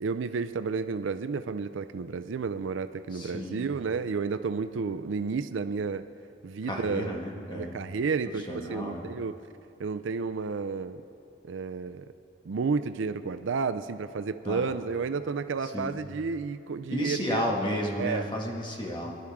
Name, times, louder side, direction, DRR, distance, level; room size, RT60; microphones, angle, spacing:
voice 1, 0.0-6.0 6.4-7.2 7.5-9.4 9.8-11.0 11.4-12.1 12.4-17.4 18.0-18.3, right 5 dB, 80° right, 11 dB, 0.4 m, -31 dB
voice 2, 3.1-3.7 6.7-7.8 8.5-9.1 14.5-14.7 15.6-15.9 16.9-19.1, left 1 dB, 25° left, -1 dB, 1.8 m, -32 dB
23.5 x 11.5 x 3.6 m, 2.6 s
head